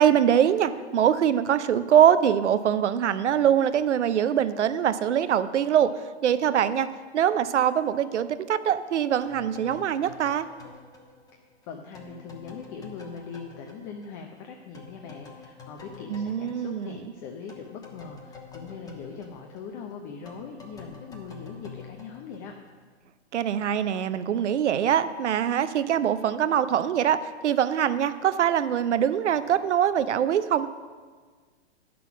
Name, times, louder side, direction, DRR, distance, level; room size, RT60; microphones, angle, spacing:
voice 1, 0.0-5.9 6.2-10.5 16.1-17.0 23.3-27.2 27.4-30.7, right 9 dB, 90° right, 13 dB, 0.6 m, -23 dB
sound 1, 9.2-14.5 14.7-22.9, left 5 dB, 10° left, 1.0 m, -47 dB
voice 2, 11.3-22.5, left 5 dB, 30° left, 3 dB, 0.7 m, -41 dB
9.1 x 6.2 x 5.9 m, 1.5 s
hypercardioid pair, 130°, 34 cm